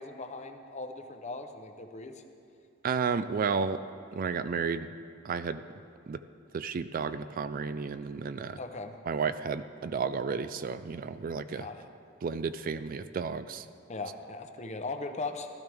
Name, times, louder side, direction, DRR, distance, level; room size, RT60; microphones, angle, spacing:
voice 1, 0.0-2.2 8.6-8.9 11.5-11.9 13.9-15.5, left 3 dB, 35° left, 6 dB, 0.7 m, -39 dB
voice 2, 2.8-3.8 4.1-4.9 5.2-5.6 6.1-6.2 6.5-8.6 9.1-11.7 12.2-13.7, right 5 dB, 45° right, 12 dB, 0.3 m, -32 dB
16.0 x 12.5 x 3.5 m, 2.4 s
head